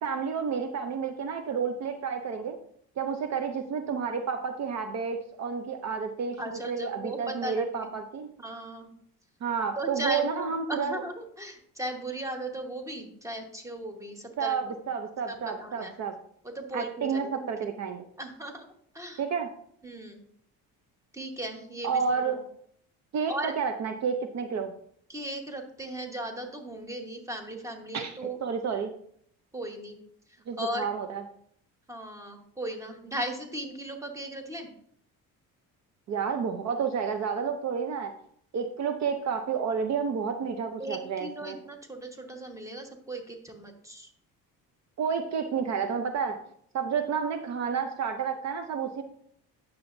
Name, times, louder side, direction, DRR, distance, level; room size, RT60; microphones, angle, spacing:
voice 1, 0.0-2.6 3.0-8.3 9.4-11.0 14.4-16.1 16.7-18.0 19.2-19.5 21.8-22.4 23.1-24.7 27.9-28.9 30.5-31.2 36.1-38.1 38.5-41.6 45.0-46.4 46.7-49.0, right 6 dB, 50° right, 7 dB, 0.7 m, -30 dB
voice 2, 6.4-7.9 8.4-8.9 9.8-14.8 15.3-16.0 16.4-17.5 18.2-19.2 19.8-20.2 21.1-22.4 23.3-23.5 25.1-28.4 29.5-30.0 30.6-30.9 31.9-34.7 40.8-44.1, right 1 dB, 10° right, 4 dB, 1.3 m, -37 dB
9.5 x 7.0 x 2.6 m, 0.66 s
cardioid pair, 115°, 36 cm